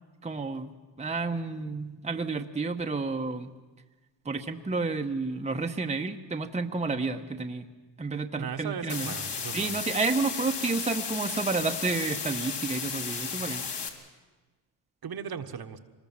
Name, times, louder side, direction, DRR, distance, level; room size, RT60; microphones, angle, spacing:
voice 1, 0.2-0.7 1.0-3.5 4.2-7.7 8.0-9.1 9.5-13.6, right 3 dB, 15° right, 4 dB, 1.1 m, -30 dB
voice 2, 8.4-9.8 15.0-15.8, right 7 dB, 50° right, 7 dB, 1.5 m, -37 dB
sound 1, 8.9-13.9, left 6 dB, 60° left, 2.9 m, -34 dB
24.5 x 20.5 x 7.3 m, 1.3 s
cardioid pair, 90°, 47 cm